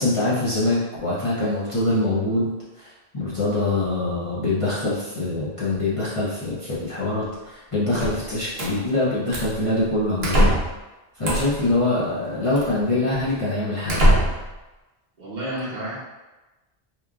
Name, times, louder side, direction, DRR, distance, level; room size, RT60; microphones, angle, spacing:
voice 1, 0.0-2.5 2.8-10.5 11.2-14.1, left 2 dB, 40° left, -9 dB, 0.5 m, -24 dB
sound 1, 7.9-8.7 9.3-9.6 10.2-10.8 11.2-11.7 12.6-12.7 13.3-13.4 13.9-14.5, equal, 75° right, 0.9 m, -21 dB
voice 2, 15.2-15.9, right 1 dB, 50° right, -7 dB, 0.7 m, -30 dB
3.0 x 2.3 x 2.3 m, 1.1 s
omnidirectional pair, 1.0 m